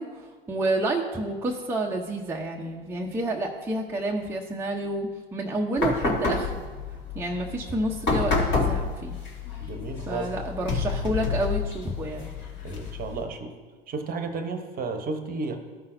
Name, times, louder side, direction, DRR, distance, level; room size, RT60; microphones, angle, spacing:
voice 1, 0.0-6.6 7.1-9.2 10.1-12.3, right 1 dB, 10° right, -1 dB, 0.7 m, -29 dB
sound 1, 5.8-13.2, left 4 dB, 40° left, 2.0 m, -29 dB
voice 2, 9.7-10.3 12.6-13.5 13.9-15.6, right 3 dB, 30° right, 7 dB, 1.0 m, -32 dB
13.5 x 5.5 x 2.6 m, 1.4 s
figure-of-eight pair, 85°, 30 cm